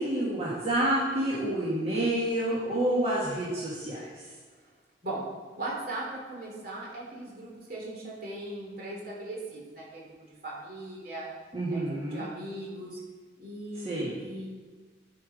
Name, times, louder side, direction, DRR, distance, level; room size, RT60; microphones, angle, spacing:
voice 1, 0.0-4.0 11.5-12.3 13.8-14.2, right 1 dB, 35° right, -8 dB, 1.8 m, -28 dB
voice 2, 5.6-11.3 11.7-13.0 13.4-14.5, right 1 dB, 55° right, -3 dB, 3.0 m, -39 dB
12.0 x 5.1 x 5.1 m, 1.4 s
head